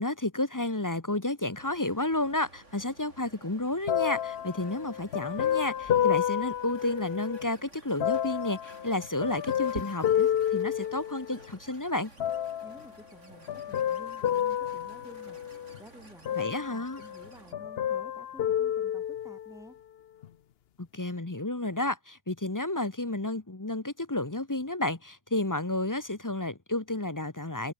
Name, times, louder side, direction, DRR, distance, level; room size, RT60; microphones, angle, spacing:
voice 1, 0.0-12.1 16.4-17.0 20.8-27.7, left 2 dB, 15° left, 1.0 m, -31 dB
sound 1, 1.6-17.5, right 2 dB, 65° right, 6.9 m, -52 dB
sound 2, 3.9-7.5 8.0-11.5 12.2-12.9 13.5-15.8 16.2-17.3 17.5-19.6 20.2-20.3, left 10 dB, 55° left, 0.8 m, -30 dB
voice 2, 12.6-15.4 15.8-19.8, equal, ahead, 2.8 m, -52 dB
omnidirectional pair, 1.3 m